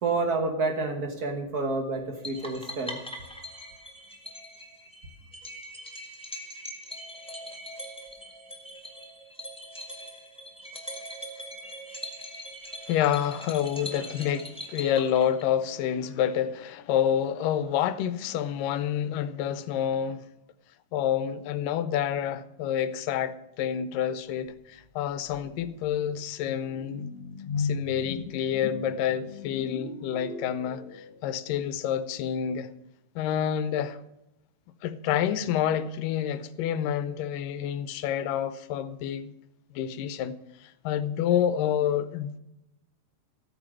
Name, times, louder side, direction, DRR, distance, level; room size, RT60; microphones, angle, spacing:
voice 1, 0.0-3.0, right 3 dB, 90° right, 0.8 m, -29 dB
sound 1, 2.2-15.7, equal, 5° left, 0.4 m, -42 dB
voice 2, 12.9-20.3 20.9-27.1 27.6-32.7 33.2-34.0 34.8-39.3 39.7-42.4, left 9 dB, 90° left, 2.4 m, -28 dB
sound 2, 24.8-24.9 25.3-31.4, left 5 dB, 55° left, 1.9 m, -37 dB
14.5 x 9.0 x 6.2 m
omnidirectional pair, 3.7 m